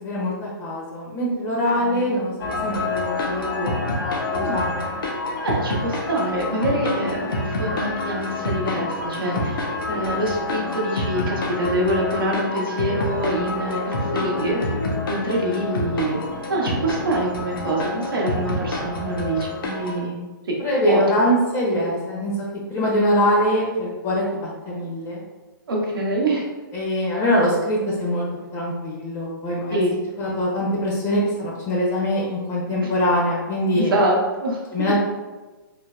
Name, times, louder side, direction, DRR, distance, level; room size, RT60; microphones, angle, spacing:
voice 1, 0.0-3.9 4.3-4.9 9.9-10.3 20.6-22.4 22.7-25.2 26.7-28.2 28.5-29.8 30.2-33.9 34.7-35.0, equal, 25° left, -4 dB, 0.5 m, -23 dB
sound 1, 2.4-20.0, left 2 dB, 75° left, 0.6 m, -27 dB
voice 2, 4.3-4.7 5.4-13.8 14.1-14.6 15.1-16.2 16.5-20.2 20.5-20.6 20.8-21.0 25.7-26.4 29.7-29.9 32.8-32.9 33.7-34.9, right 1 dB, 85° right, -3 dB, 0.7 m, -25 dB
3.2 x 2.0 x 2.3 m, 1.2 s
hypercardioid pair, 140°, 12 cm